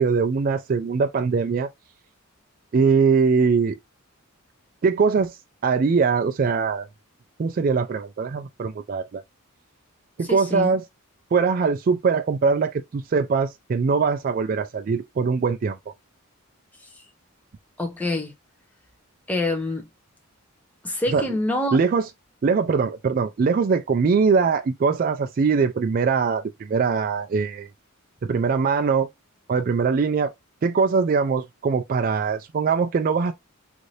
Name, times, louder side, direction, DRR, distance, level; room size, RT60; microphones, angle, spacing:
voice 1, 0.0-1.7 2.7-3.8 4.8-5.4 5.6-6.9 7.4-9.2 10.2-10.9 11.3-15.8 21.1-21.4 21.7-22.1 22.4-27.7 28.2-29.1 29.5-30.3 30.6-33.3, right 5 dB, 40° right, 0.3 m, -22 dB
voice 2, 10.3-10.7 17.8-18.3 19.3-19.9 20.8-21.8, left 2 dB, 5° left, 0.6 m, -26 dB
2.7 x 2.5 x 3.1 m
head